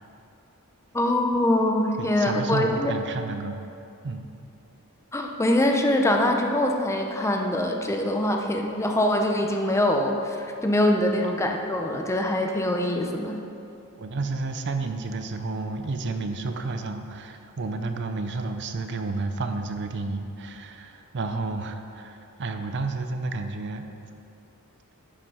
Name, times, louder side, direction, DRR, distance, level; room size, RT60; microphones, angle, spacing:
voice 1, 0.9-2.9 5.1-13.4, left 1 dB, 15° left, 2 dB, 0.7 m, -23 dB
voice 2, 2.0-3.6 4.0-4.3 11.2-11.4 14.0-23.9, right 3 dB, 50° right, 6 dB, 0.6 m, -31 dB
9.9 x 5.9 x 5.5 m, 2.6 s
head